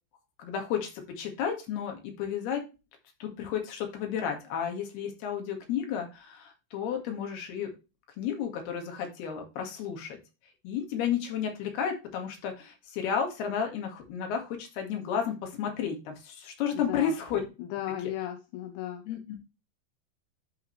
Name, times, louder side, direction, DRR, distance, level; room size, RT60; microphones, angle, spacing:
voice 1, 0.4-2.6 3.2-7.7 8.2-10.2 10.6-17.4 19.1-19.4, left 8 dB, 60° left, 3 dB, 3.7 m, -32 dB
voice 2, 16.7-17.1 17.6-19.0, left 12 dB, 80° left, 5 dB, 3.1 m, -35 dB
12.0 x 5.2 x 3.2 m, 0.28 s
omnidirectional pair, 5.4 m